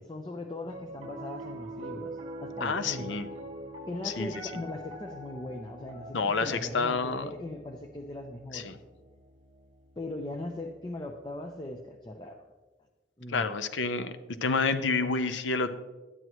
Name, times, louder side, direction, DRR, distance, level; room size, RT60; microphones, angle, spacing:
voice 1, 0.1-3.2 3.9-8.7 10.0-12.4 13.2-13.5, left 1 dB, 25° left, 3 dB, 0.5 m, -39 dB
Piano, 0.6-11.0, right 1 dB, 35° right, 1.0 m, -44 dB
voice 2, 2.6-3.3 4.0-4.6 6.1-7.3 8.5-8.8 13.3-14.1 14.4-15.7, left 4 dB, 80° left, 12 dB, 0.6 m, -29 dB
12.5 x 9.4 x 3.0 m, 1.3 s
head